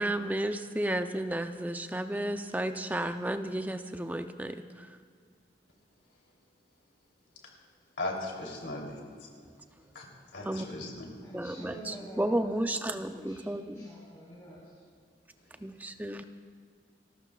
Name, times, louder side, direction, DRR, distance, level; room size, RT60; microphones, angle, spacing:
voice 1, 0.0-4.9 10.5-10.7 11.3-13.9 15.6-16.2, right 1 dB, 10° right, 0.5 m, -32 dB
voice 2, 8.0-9.3 9.9-11.0, left 2 dB, 85° left, 3.1 m, -38 dB
voice 3, 11.2-12.4 12.9-14.7, equal, 15° left, 4.4 m, -48 dB
29.5 x 14.0 x 2.4 m
head